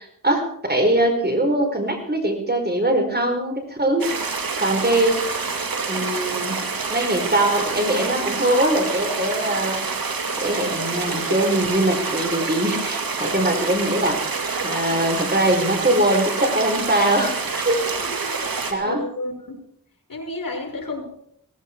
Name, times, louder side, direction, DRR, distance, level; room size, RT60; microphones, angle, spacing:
voice 1, 0.0-4.1 4.6-5.2 5.9-6.6 6.9-9.8 10.4-14.2 14.6-17.8 18.7-19.1, right 1 dB, 30° right, 4 dB, 4.8 m, -22 dB
sound 1, 4.0-18.7, right 4 dB, 85° right, 2.5 m, -27 dB
voice 2, 18.0-19.6 20.1-21.1, left 2 dB, 75° left, 2 dB, 6.3 m, -32 dB
17.5 x 16.5 x 4.7 m, 0.68 s
cardioid pair, 50°, 35 cm